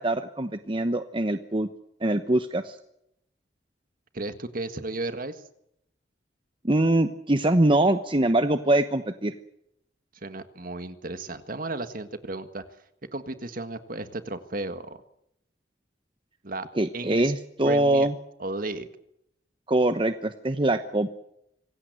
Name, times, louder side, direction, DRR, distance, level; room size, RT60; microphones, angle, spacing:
voice 1, 0.0-1.7 2.0-2.8 6.6-9.3 16.8-18.1 19.7-21.1, right 1 dB, 30° right, 9 dB, 1.0 m, -23 dB
voice 2, 4.1-5.4 10.2-12.6 13.1-15.0 16.4-16.7 16.9-17.3 17.7-18.1 18.4-18.9, right 2 dB, 50° right, 10 dB, 1.8 m, -34 dB
25.5 x 17.5 x 8.1 m, 0.78 s
head